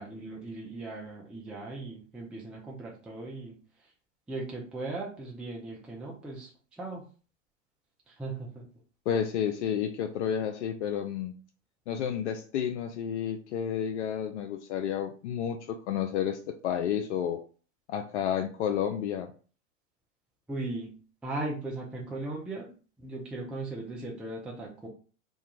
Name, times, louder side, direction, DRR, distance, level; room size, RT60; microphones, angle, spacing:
voice 1, 0.0-3.9 4.3-7.1 8.1-8.7 20.5-20.9 21.2-22.7 23.0-24.9, right 2 dB, 5° right, -2 dB, 0.4 m, -38 dB
voice 2, 9.1-11.3 11.9-17.4 17.9-19.3, left 9 dB, 65° left, 6 dB, 0.5 m, -31 dB
2.4 x 2.2 x 2.9 m, 0.38 s
hypercardioid pair, 95°, 37 cm